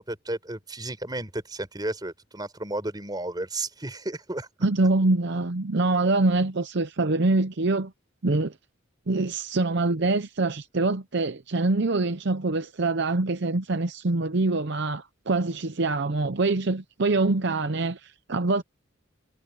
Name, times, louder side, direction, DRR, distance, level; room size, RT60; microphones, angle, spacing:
voice 1, 0.1-4.5, right 2 dB, 20° right, 4.4 m, -33 dB
voice 2, 4.6-7.9 8.2-8.5 9.1-18.6, right 2 dB, 55° right, 0.7 m, -24 dB
head